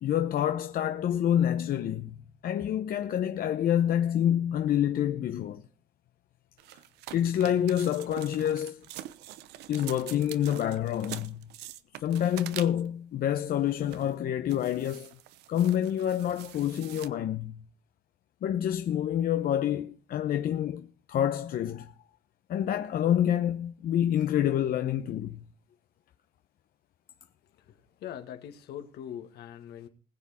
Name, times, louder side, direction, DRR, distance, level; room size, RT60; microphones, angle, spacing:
voice 1, 0.0-2.2 2.4-5.6 7.1-8.8 9.7-11.5 12.0-15.1 15.5-17.6 18.4-21.9 22.5-25.4, left 10 dB, 60° left, 0.9 m, -27 dB
sound 1, 6.6-13.0 13.6-14.1 14.5-17.1, right 14 dB, 85° right, 0.9 m, -45 dB
voice 2, 27.5-29.9, left 10 dB, 75° left, 2.0 m, -42 dB
20.5 x 7.3 x 4.3 m
cardioid pair, 110°, 17 cm